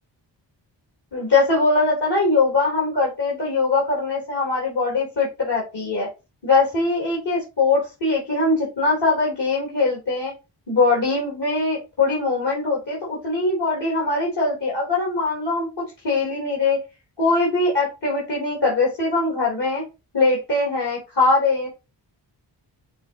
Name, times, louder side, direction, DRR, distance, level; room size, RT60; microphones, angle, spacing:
voice 1, 1.1-6.1 6.4-10.3 10.7-15.7 16.0-16.8 17.2-19.8 20.1-21.7, left 3 dB, 60° left, -4 dB, 3.8 m, -21 dB
7.8 x 4.2 x 3.0 m, 0.27 s
cardioid pair, 50°, 45 cm